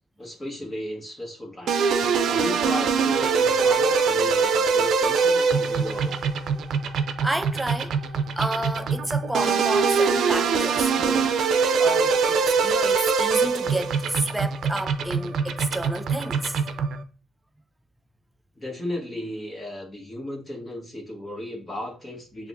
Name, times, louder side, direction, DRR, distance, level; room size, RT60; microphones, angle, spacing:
voice 1, 0.2-1.9 2.3-6.2 18.5-22.5, left 1 dB, 30° left, 1.4 m, -34 dB
sound 1, 1.7-17.0, right 5 dB, 70° right, 0.5 m, -23 dB
voice 2, 7.2-7.9 8.4-16.6, right 1 dB, 10° right, 0.4 m, -31 dB
6.7 x 2.5 x 2.6 m
cardioid pair, 90°, 0 cm